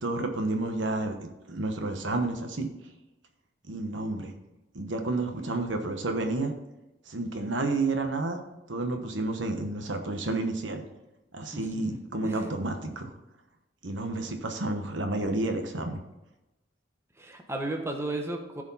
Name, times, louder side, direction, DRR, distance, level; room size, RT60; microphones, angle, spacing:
voice 1, 0.0-1.2 1.5-2.7 3.7-4.3 4.7-6.5 7.1-8.4 8.7-10.8 11.3-13.1 13.8-16.0, right 2 dB, 75° right, 5 dB, 1.1 m, -30 dB
voice 2, 11.5-12.0 12.2-12.6 17.2-18.6, right 2 dB, 15° right, 3 dB, 1.1 m, -34 dB
15.0 x 5.0 x 4.1 m, 0.97 s
head